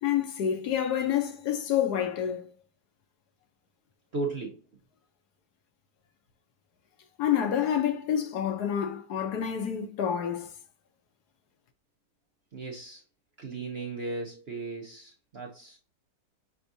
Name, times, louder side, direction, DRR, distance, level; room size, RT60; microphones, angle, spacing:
voice 1, 0.0-2.5 7.2-10.5, left 9 dB, 70° left, 1.1 m, -28 dB
voice 2, 4.1-4.6 12.5-13.0 13.4-15.8, right 3 dB, 50° right, 0.7 m, -36 dB
5.8 x 3.5 x 2.6 m
omnidirectional pair, 1.9 m